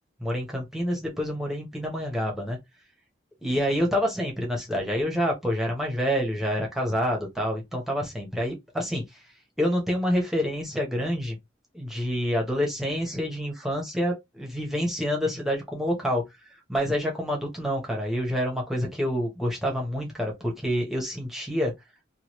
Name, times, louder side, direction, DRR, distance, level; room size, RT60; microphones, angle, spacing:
voice 1, 0.2-2.6 3.4-11.4 11.7-16.2 16.5-21.7, equal, ahead, 0.9 m, -27 dB
3.0 x 2.3 x 3.0 m
head